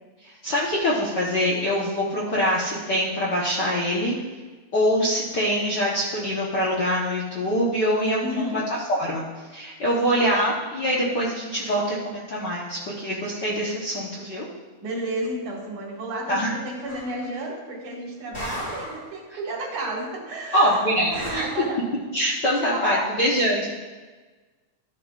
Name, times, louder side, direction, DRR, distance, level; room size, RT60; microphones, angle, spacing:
voice 1, 0.2-4.2 4.7-8.4 8.9-9.2 9.5-14.4 16.3-16.5 20.5-21.5 22.1-23.7, equal, 55° left, -6 dB, 1.2 m, -24 dB
voice 2, 8.2-8.6 14.8-20.8 21.1-21.8 22.6-23.2, right 1 dB, 80° right, -3 dB, 3.4 m, -32 dB
sound 1, 16.9-17.2 18.3-19.1 21.1-21.7, left 1 dB, 20° left, 1.5 m, -35 dB
13.5 x 7.4 x 2.4 m, 1.3 s
omnidirectional pair, 3.4 m